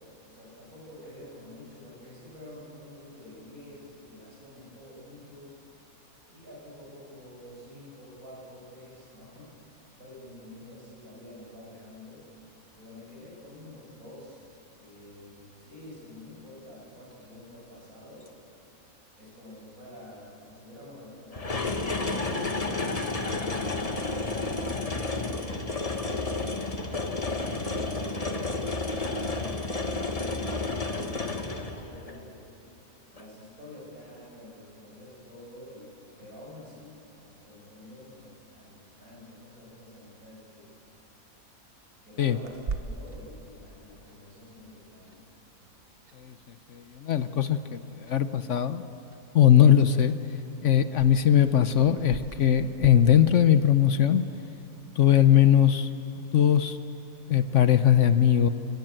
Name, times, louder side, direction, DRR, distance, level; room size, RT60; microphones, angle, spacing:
voice 1, 0.2-5.6 6.3-12.3 12.7-14.5 14.8-18.3 19.2-27.3 27.9-29.7 30.8-32.8 33.1-40.7 42.0-45.2, left 1 dB, 75° right, -4 dB, 7.5 m, -48 dB
sound 1, 21.3-32.1 33.2-33.3, left 3 dB, 25° left, 1.4 m, -31 dB
Clock, 42.4-52.9, right 4 dB, 45° right, 1.3 m, -43 dB
voice 2, 46.7-48.8 49.3-50.1 50.6-54.2 55.0-55.9 56.3-56.8 57.3-58.5, left 10 dB, 60° left, 11 dB, 1.0 m, -20 dB
28.5 x 18.5 x 9.0 m, 2.9 s
omnidirectional pair, 1.5 m